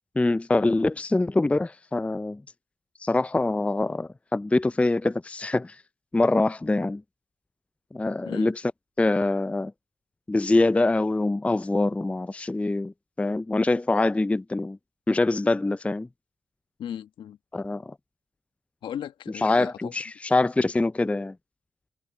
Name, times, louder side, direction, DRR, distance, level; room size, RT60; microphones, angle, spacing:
voice 1, 0.2-2.4 3.0-5.7 6.1-7.0 7.9-8.5 9.0-9.7 10.3-14.8 15.1-16.1 17.5-17.9 19.4-21.3, left 2 dB, 15° left, 0.4 m, -24 dB
voice 2, 8.2-8.5 16.8-17.4 18.8-19.9, left 10 dB, 75° left, 1.4 m, -36 dB
hypercardioid pair, 40°, 8 cm